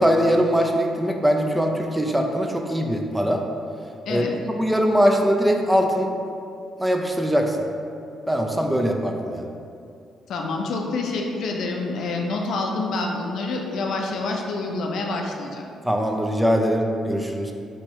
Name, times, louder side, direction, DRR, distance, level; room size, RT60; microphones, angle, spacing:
voice 1, 0.0-3.4 4.1-4.3 4.6-6.1 6.8-7.6 8.3-9.5 15.8-17.5, equal, 10° right, 2 dB, 0.3 m, -21 dB
voice 2, 10.3-15.7, left 3 dB, 70° left, 1 dB, 0.4 m, -27 dB
3.4 x 2.8 x 3.1 m, 2.4 s
cardioid pair, 90°, 0 cm